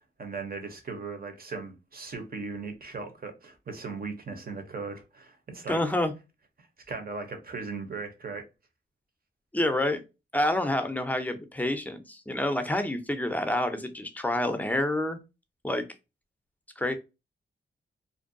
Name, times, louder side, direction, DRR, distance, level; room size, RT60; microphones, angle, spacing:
voice 1, 0.2-5.8 6.6-8.5, right 4 dB, 45° right, 0.8 m, -38 dB
voice 2, 5.7-6.1 9.5-10.0 10.3-15.2 15.6-15.8 16.8-16.9, left 1 dB, 10° left, 0.5 m, -28 dB
2.5 x 2.2 x 2.5 m
cardioid pair, 75°, 20 cm